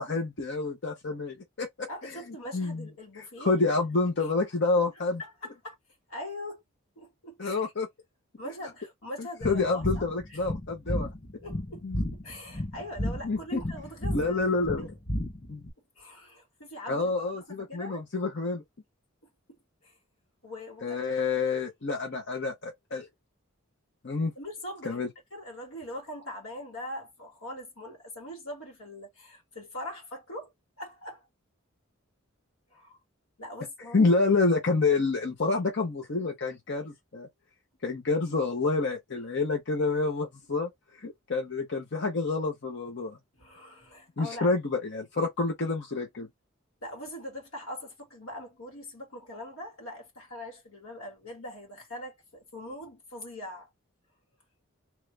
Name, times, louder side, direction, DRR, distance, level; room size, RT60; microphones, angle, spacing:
voice 1, 0.0-2.2 2.5-2.9 3.2-5.2 7.4-7.9 9.4-11.1 11.8-12.0 13.2-13.6 14.1-14.9 15.5-15.6 16.9-18.6 20.8-23.1 24.0-24.3 24.9-25.1 33.9-37.3 37.8-43.2 44.2-46.3, left 3 dB, 55° left, 0.8 m, -28 dB
voice 2, 1.9-3.8 4.2-4.3 5.2-5.8 6.1-6.6 7.0-7.7 8.4-10.5 11.4-11.8 12.1-14.4 14.8-14.9 16.0-18.0 19.8-20.0 20.4-21.0 24.4-25.0 25.3-31.3 32.7-33.0 33.4-34.0 43.4-44.6 46.8-53.7, left 1 dB, 85° left, 1.9 m, -42 dB
sound 1, 9.4-15.7, left 1 dB, 20° left, 0.6 m, -33 dB
3.0 x 2.4 x 3.2 m
head